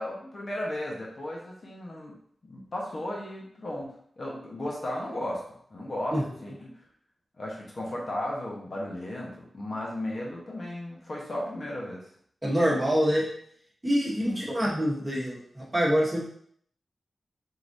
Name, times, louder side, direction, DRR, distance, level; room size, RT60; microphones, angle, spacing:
voice 1, 0.0-2.1 2.5-5.4 5.7-6.7 7.4-12.1 14.2-14.4, left 1 dB, 45° left, -3 dB, 1.0 m, -35 dB
voice 2, 12.4-13.2 13.8-16.2, equal, 20° right, -6 dB, 1.5 m, -25 dB
4.7 x 3.9 x 2.6 m, 0.64 s
wide cardioid pair, 135°, 0 cm